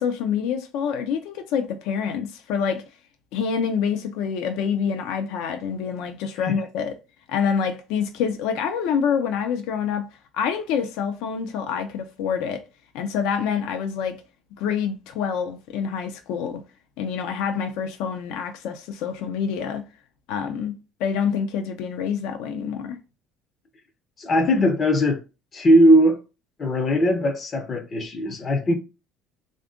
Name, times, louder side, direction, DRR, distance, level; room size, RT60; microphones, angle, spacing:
voice 1, 0.0-2.9 3.3-7.0 7.3-10.1 10.3-12.6 12.9-14.2 14.6-16.6 17.0-19.8 20.3-20.7 21.0-23.0, left 7 dB, 80° left, 0.5 m, -26 dB
voice 2, 24.2-25.2 25.5-26.2 26.6-28.7, equal, 30° left, 0.5 m, -19 dB
3.4 x 2.5 x 3.6 m
cardioid pair, 135°, 0 cm